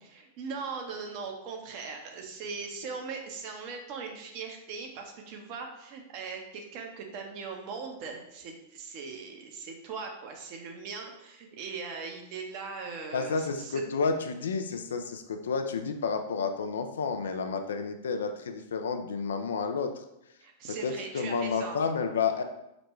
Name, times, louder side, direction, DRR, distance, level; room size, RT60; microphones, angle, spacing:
voice 1, 0.0-13.8 20.4-21.8, right 5 dB, 50° right, 3 dB, 0.8 m, -40 dB
voice 2, 13.1-20.0 20.7-22.4, left 5 dB, 80° left, 7 dB, 0.4 m, -30 dB
5.0 x 2.2 x 3.0 m, 0.86 s
hypercardioid pair, 105°, 0 cm